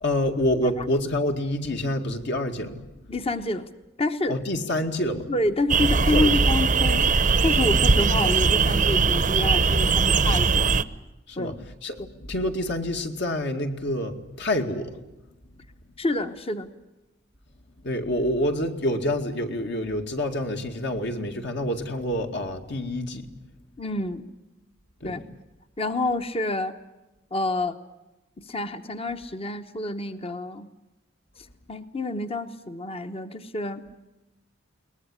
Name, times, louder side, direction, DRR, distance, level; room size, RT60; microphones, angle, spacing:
voice 1, 0.0-2.8 4.3-5.3 6.1-6.3 11.3-11.6 11.8-15.0 17.8-23.3 25.0-25.1, left 1 dB, 60° left, 4 dB, 2.3 m, -27 dB
voice 2, 3.1-3.7 4.0-4.4 5.3-10.8 11.4-11.5 16.0-16.7 23.8-24.3 25.0-25.2 25.8-26.8 27.3-27.8 28.4-30.7 31.7-33.8, left 2 dB, 30° left, 9 dB, 1.0 m, -28 dB
sound 1, 5.7-10.8, right 4 dB, 40° right, 0.8 m, -20 dB
22.0 x 19.5 x 9.9 m, 1.0 s
head